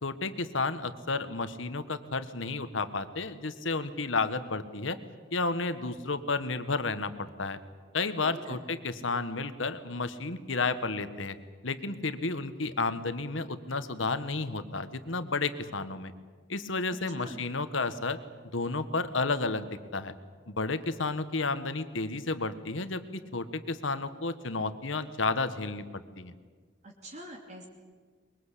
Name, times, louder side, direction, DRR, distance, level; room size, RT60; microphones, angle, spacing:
voice 1, 0.0-5.0 5.3-7.6 7.9-11.4 11.6-16.1 16.5-18.2 18.5-20.1 20.5-23.0 23.3-26.3, left 3 dB, 75° left, 11 dB, 1.5 m, -32 dB
voice 2, 8.2-8.8 16.9-17.4 26.8-27.7, right 1 dB, 35° right, 0 dB, 2.9 m, -45 dB
23.5 x 22.5 x 8.4 m, 1.5 s
head